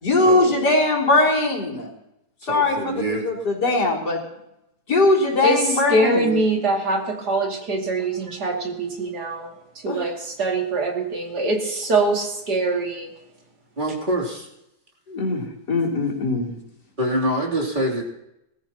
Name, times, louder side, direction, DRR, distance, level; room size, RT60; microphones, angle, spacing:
voice 1, 0.0-1.9 2.5-4.2 4.9-6.4 9.8-10.0 15.1-16.5, left 2 dB, 75° left, -3 dB, 4.2 m, -21 dB
voice 2, 2.4-3.3 13.8-14.5 17.0-18.0, right 1 dB, 30° right, -2 dB, 3.4 m, -25 dB
voice 3, 5.4-9.5 9.8-13.1, right 2 dB, 75° right, 0 dB, 3.2 m, -23 dB
21.5 x 14.0 x 2.9 m, 0.83 s
omnidirectional pair, 1.8 m